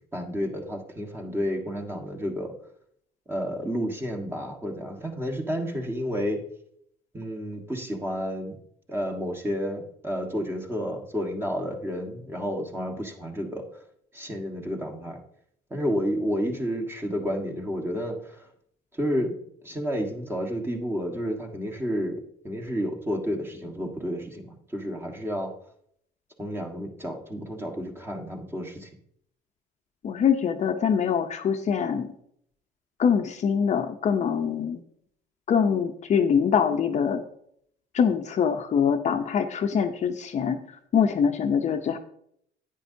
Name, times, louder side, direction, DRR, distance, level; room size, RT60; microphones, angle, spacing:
voice 1, 0.1-2.5 3.3-6.4 7.1-8.5 8.9-13.6 14.1-15.2 15.7-18.4 18.9-19.3 19.6-22.1 22.4-25.5 26.4-28.9, equal, 15° right, 2 dB, 1.5 m, -30 dB
voice 2, 30.0-32.1 33.0-34.8 35.5-37.2 37.9-40.6 40.9-42.0, left 7 dB, 45° left, 6 dB, 0.7 m, -24 dB
10.0 x 9.2 x 2.7 m, 0.68 s
cardioid pair, 110°, 17 cm